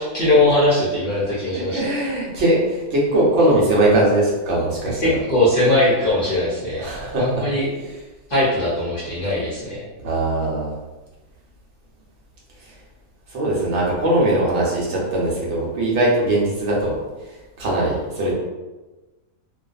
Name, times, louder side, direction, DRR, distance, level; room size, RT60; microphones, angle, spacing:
voice 1, 0.0-1.9 5.0-6.9 7.2-7.7 8.3-9.8, left 1 dB, 50° left, -9 dB, 0.7 m, -20 dB
voice 2, 1.5-5.2 6.8-7.5 7.8-8.0 10.0-10.7 12.6-12.7 13.3-17.0 17.3-18.3, right 1 dB, 60° right, -5 dB, 0.9 m, -20 dB
2.5 x 2.4 x 2.4 m, 1.2 s
omnidirectional pair, 1.6 m